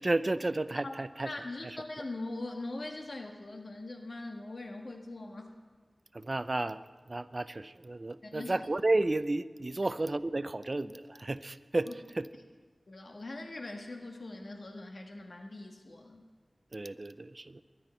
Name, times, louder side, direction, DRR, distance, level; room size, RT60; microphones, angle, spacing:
voice 1, 0.0-1.3 1.6-1.8 6.1-6.8 7.1-12.3 16.7-17.6, right 2 dB, 45° right, 13 dB, 0.5 m, -32 dB
voice 2, 1.2-5.5 8.2-8.5 11.9-12.0 12.9-16.2, left 2 dB, 70° left, 3 dB, 1.6 m, -41 dB
23.5 x 11.0 x 4.5 m, 1.5 s
wide cardioid pair, 55°, 0 cm